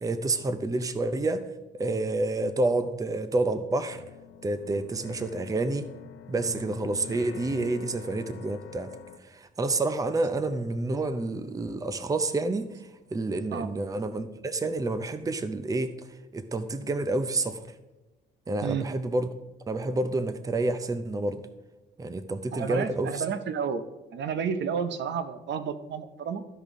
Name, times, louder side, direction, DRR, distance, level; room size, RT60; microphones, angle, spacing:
voice 1, 0.0-1.5 1.7-4.0 4.4-5.9 6.3-8.9 9.2-12.7 13.1-15.9 16.3-17.7 18.5-19.3 19.7-21.4 22.0-23.1, right 2 dB, 15° right, 11 dB, 0.6 m, -29 dB
sound 1, 3.5-9.2, left 9 dB, 75° left, 0.7 m, -45 dB
voice 2, 22.5-23.8 24.1-26.5, right 7 dB, 65° right, 10 dB, 0.7 m, -31 dB
13.5 x 5.2 x 3.6 m, 1.1 s
cardioid pair, 90°, 20 cm